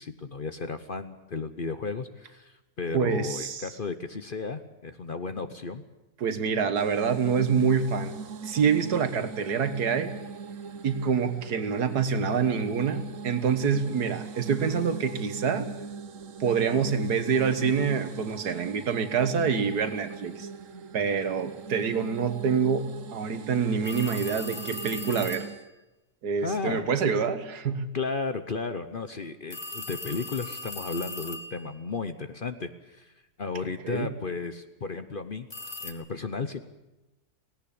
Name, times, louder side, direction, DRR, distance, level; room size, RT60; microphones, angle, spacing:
voice 1, 0.0-5.8 26.4-26.9 27.9-33.1 33.4-35.5 35.8-36.6, left 4 dB, 45° left, 10 dB, 0.8 m, -34 dB
voice 2, 2.9-3.7 6.2-8.1 8.4-10.1 10.8-15.7 16.4-20.5 20.9-25.5 26.2-27.9 33.8-34.1, right 6 dB, 80° right, 10 dB, 1.9 m, -26 dB
sound 1, 6.8-25.7, right 5 dB, 60° right, 1.3 m, -40 dB
sound 2, 23.8-25.6 29.5-31.8 35.5-35.9, left 2 dB, 25° left, 1.6 m, -39 dB
17.5 x 17.5 x 8.6 m, 1.0 s
omnidirectional pair, 1.7 m